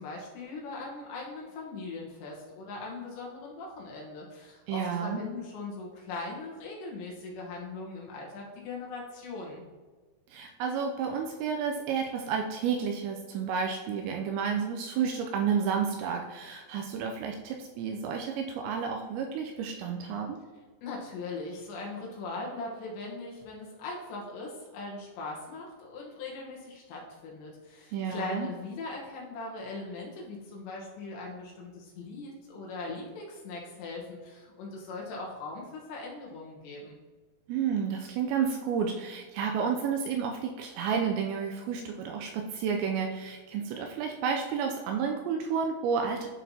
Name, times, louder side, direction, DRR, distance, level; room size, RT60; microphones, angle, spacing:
voice 1, 0.0-9.6 20.8-37.0, left 3 dB, 75° left, -2 dB, 3.2 m, -40 dB
voice 2, 4.7-5.2 10.3-20.4 27.9-28.5 37.5-46.3, right 6 dB, 85° right, 3 dB, 2.6 m, -31 dB
11.0 x 4.2 x 2.7 m, 1.3 s
omnidirectional pair, 5.4 m